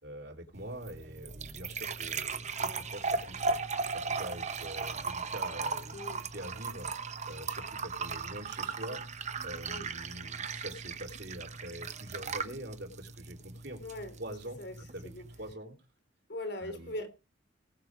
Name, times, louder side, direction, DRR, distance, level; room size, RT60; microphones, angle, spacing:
voice 1, 0.0-3.6 3.9-5.9 6.3-6.9 7.3-9.0 9.4-13.8 14.2-14.6 14.9-15.1 15.4-15.8 16.6-16.9, right 1 dB, 65° right, 3.8 m, -44 dB
sound 1, 0.5-15.5, right 4 dB, 40° right, 1.1 m, -37 dB
voice 2, 5.9-6.2 9.7-9.9 13.8-14.2 14.6-15.3 16.3-17.1, left 1 dB, 65° left, 3.1 m, -40 dB
19.5 x 6.9 x 4.9 m
head